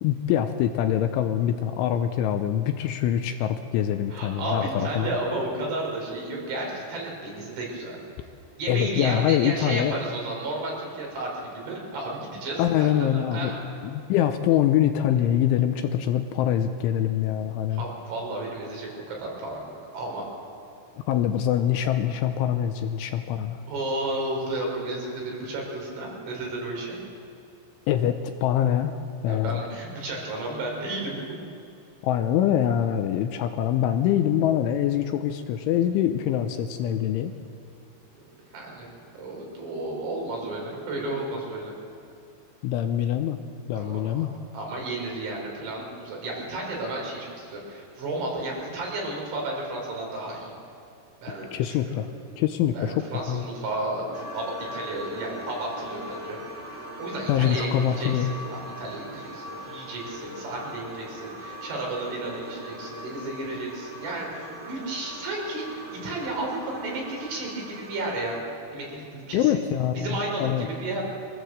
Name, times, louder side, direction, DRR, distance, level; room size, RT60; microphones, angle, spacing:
voice 1, 0.0-5.1 8.7-9.9 12.6-13.5 13.8-17.8 21.1-23.6 27.9-29.0 29.2-29.6 32.0-37.3 42.6-43.4 43.7-44.3 51.5-52.1 52.4-53.4 57.3-58.3 69.3-70.1 70.4-70.7, left 10 dB, 80° left, 7 dB, 3.0 m, -24 dB
voice 2, 4.1-8.0 8.6-13.6 17.7-20.3 23.7-27.0 29.3-31.2 38.5-41.8 43.7-44.2 44.5-50.5 51.2-52.0 52.7-56.4 57.0-68.4 68.7-69.5 70.0-71.0, right 2 dB, 65° right, -1 dB, 7.1 m, -33 dB
sound 1, 54.1-68.4, equal, 15° right, 2.7 m, -40 dB
23.5 x 16.5 x 7.8 m, 2.6 s
omnidirectional pair, 6.0 m